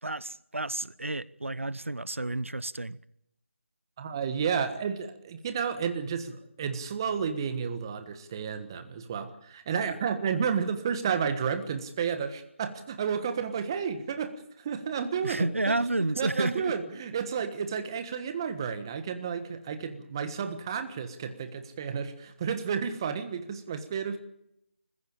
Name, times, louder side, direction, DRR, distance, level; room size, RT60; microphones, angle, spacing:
voice 1, 0.0-3.0 15.2-16.7, right 2 dB, 85° right, 0.8 m, -30 dB
voice 2, 4.0-15.5 16.2-24.2, right 6 dB, 20° right, 1.3 m, -31 dB
20.5 x 15.5 x 8.6 m
figure-of-eight pair, 165°, 7 cm